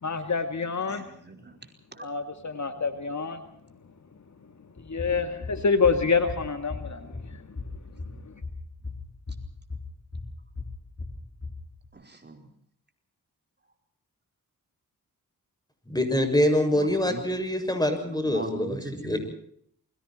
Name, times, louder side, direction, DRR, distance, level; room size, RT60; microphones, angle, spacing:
voice 1, 0.0-1.0 2.0-3.4 4.9-7.4, left 5 dB, 55° left, 8 dB, 2.3 m, -27 dB
voice 2, 0.9-2.1 11.9-12.5 16.7-17.2 18.2-19.2, right 3 dB, 30° right, 4 dB, 5.0 m, -40 dB
sound 1, 4.8-11.9, left 3 dB, 35° left, 4.0 m, -38 dB
voice 3, 15.9-19.2, left 1 dB, 10° left, 7 dB, 6.8 m, -25 dB
28.0 x 23.5 x 4.5 m, 0.66 s
cardioid pair, 80°, 35 cm